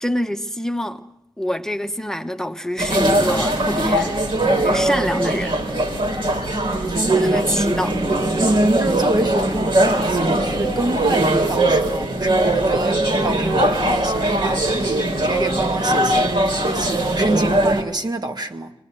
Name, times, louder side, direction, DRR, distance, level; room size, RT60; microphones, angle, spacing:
voice 1, 0.0-1.0 1.4-4.3 4.6-5.6 7.1-8.0, left 1 dB, 5° left, 1.1 m, -25 dB
sound 1, 2.8-17.8, right 1 dB, 70° right, 4.1 m, -20 dB
voice 2, 6.6-7.3 8.4-18.7, right 2 dB, 50° right, 1.9 m, -25 dB
21.5 x 19.5 x 8.0 m
cardioid pair, 60°, 9 cm